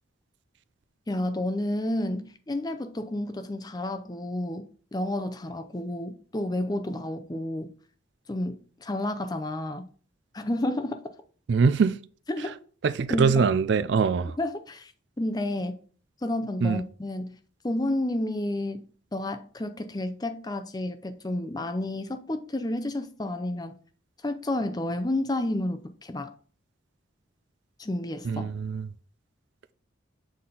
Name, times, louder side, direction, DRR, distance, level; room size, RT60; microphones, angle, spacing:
voice 1, 1.1-7.7 8.3-9.8 10.3-11.0 12.3-12.5 13.1-13.5 14.4-14.9 15.2-15.7 16.2-17.4 17.6-23.8 24.2-26.3 27.8-28.5, left 1 dB, 20° left, 0.5 m, -30 dB
voice 2, 11.5-12.0 12.8-14.4 16.6-16.8 28.2-28.9, right 5 dB, 65° right, 0.4 m, -23 dB
7.6 x 4.2 x 3.8 m
head